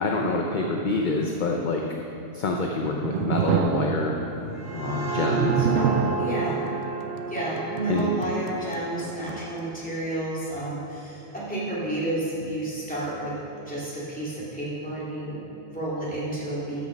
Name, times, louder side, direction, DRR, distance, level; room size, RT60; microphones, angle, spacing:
voice 1, 0.0-1.8 2.3-4.1 4.7-5.7 7.9-8.1, left 3 dB, 45° left, 1 dB, 0.7 m, -26 dB
sound 1, 2.5-9.7, right 6 dB, 85° right, 1.0 m, -29 dB
sound 2, 4.3-9.8, right 3 dB, 20° right, 0.7 m, -32 dB
voice 2, 6.2-6.7 7.3-13.3 13.7-16.8, right 1 dB, 5° left, -8 dB, 2.7 m, -31 dB
13.0 x 6.1 x 5.2 m, 2.8 s
omnidirectional pair, 1.3 m